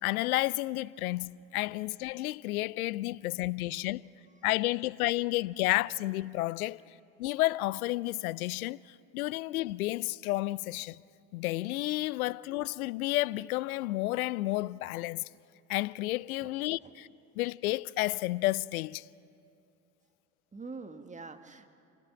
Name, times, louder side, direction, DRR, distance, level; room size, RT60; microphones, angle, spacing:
voice 1, 0.0-4.0 4.4-6.8 7.2-11.0 11.3-15.2 15.7-17.1 17.4-19.0, left 18 dB, 75° left, 0.5 m, -31 dB
voice 2, 4.0-4.5 16.4-17.0 20.5-21.7, right 4 dB, 15° right, 1.4 m, -46 dB
27.5 x 17.0 x 5.8 m
hypercardioid pair, 70°, 44 cm